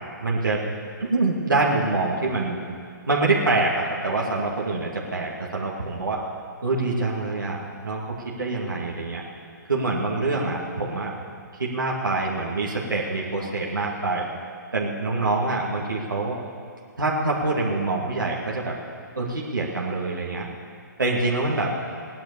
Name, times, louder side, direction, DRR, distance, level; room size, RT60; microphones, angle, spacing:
voice 1, 0.2-0.6 1.0-2.6 3.1-6.2 6.6-8.0 8.4-9.2 9.7-11.1 11.6-14.3 14.7-16.4 17.0-18.7 19.1-20.5 21.0-21.7, right 3 dB, 80° right, -3 dB, 2.4 m, -25 dB
17.5 x 10.5 x 7.0 m, 2.2 s
figure-of-eight pair, 135°, 11 cm